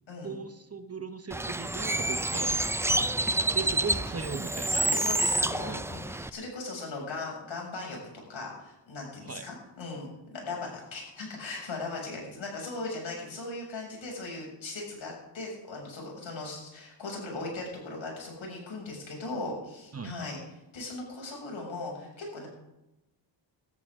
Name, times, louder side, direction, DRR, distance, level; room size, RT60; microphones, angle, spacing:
voice 1, 0.2-2.6 2.9-3.1 3.5-5.0 5.2-5.8 9.2-9.5 19.9-20.2, right 5 dB, 30° right, 9 dB, 1.0 m, -38 dB
Bird, 1.3-6.3, right 2 dB, 5° right, 0.5 m, -28 dB
voice 2, 4.7-8.0 8.3-20.4 20.7-22.5, left 3 dB, 70° left, -1 dB, 7.0 m, -38 dB
20.0 x 13.5 x 3.7 m, 0.95 s
cardioid pair, 80°, 48 cm